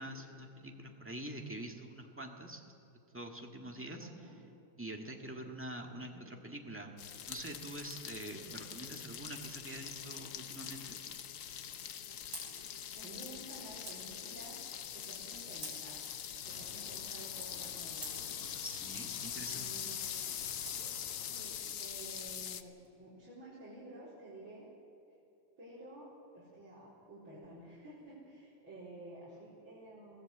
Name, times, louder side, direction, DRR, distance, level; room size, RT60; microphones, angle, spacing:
voice 1, 0.0-2.6 3.1-4.1 4.8-6.9 7.3-11.0 18.5-19.9, right 1 dB, 5° right, 2 dB, 1.5 m, -45 dB
voice 2, 4.0-4.4 12.7-16.1 16.5-18.1 19.5-20.3 21.1-24.7 25.6-30.2, right 1 dB, 60° right, -10 dB, 4.9 m, -52 dB
sound 1, 7.0-22.6, left 9 dB, 80° left, 0.7 m, -43 dB
sound 2, 11.3-22.9, right 2 dB, 40° right, 5.8 m, -56 dB
Traffic noise roadway noise, 16.4-21.4, left 2 dB, 55° left, 4.6 m, -56 dB
22.5 x 16.5 x 8.0 m, 2.9 s
omnidirectional pair, 2.4 m